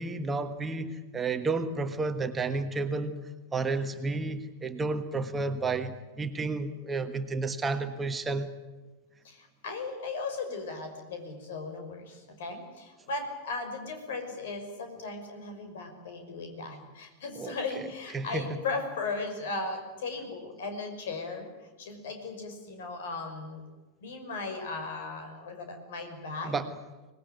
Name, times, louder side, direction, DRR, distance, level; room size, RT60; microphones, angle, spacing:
voice 1, 0.0-3.2 3.5-8.5 17.3-18.7 26.4-26.8, right 3 dB, 15° right, 7 dB, 1.5 m, -32 dB
voice 2, 9.2-21.5 21.8-23.6 24.0-26.5, left 3 dB, 55° left, 6 dB, 5.8 m, -37 dB
25.0 x 19.5 x 9.5 m, 1.1 s
figure-of-eight pair, 90°, 0 cm